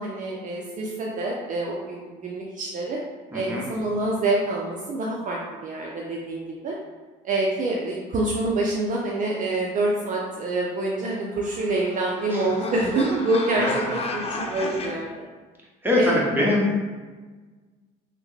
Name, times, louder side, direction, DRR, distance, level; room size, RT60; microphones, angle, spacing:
voice 1, 0.0-3.0 3.3-6.7 7.2-15.2 16.0-16.5, right 2 dB, 40° right, -3 dB, 0.5 m, -26 dB
voice 2, 3.3-3.6 12.3-12.4 13.6-13.9 15.8-16.8, left 1 dB, 10° right, -4 dB, 1.0 m, -22 dB
sound 1, 11.0-14.9, left 2 dB, 30° left, 0.5 m, -34 dB
3.3 x 2.1 x 3.2 m, 1.3 s
supercardioid pair, 80°, 20 cm